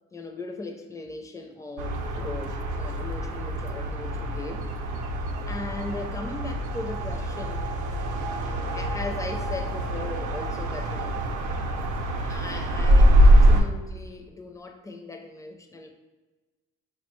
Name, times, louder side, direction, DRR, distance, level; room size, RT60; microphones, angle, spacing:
voice 1, 0.1-4.6 5.5-7.6 8.7-11.2 12.2-15.9, left 2 dB, 10° left, 4 dB, 0.4 m, -38 dB
sound 1, 1.8-13.6, equal, 75° right, 0.5 m, -24 dB
4.8 x 2.2 x 3.0 m, 1.2 s
cardioid pair, 90°, 30 cm